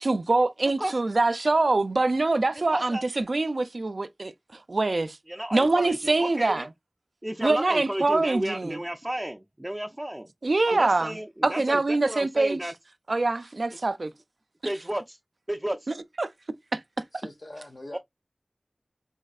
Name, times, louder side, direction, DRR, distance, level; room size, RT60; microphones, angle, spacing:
voice 1, 0.0-4.3 4.7-5.2 5.5-6.7 7.4-8.8 10.4-11.2 11.4-12.6 13.1-14.1 16.2-16.3 16.7-16.8, right 2 dB, 85° right, 0.4 m, -24 dB
voice 2, 2.5-3.0 5.3-6.7 7.2-10.3 10.7-12.7 13.7-13.8 14.6-15.2 15.5-15.9 17.9-18.0, right 1 dB, 20° right, 0.4 m, -32 dB
voice 3, 17.1-18.0, left 1 dB, 75° left, 1.0 m, -42 dB
4.2 x 3.1 x 2.3 m
wide cardioid pair, 50°, 0 cm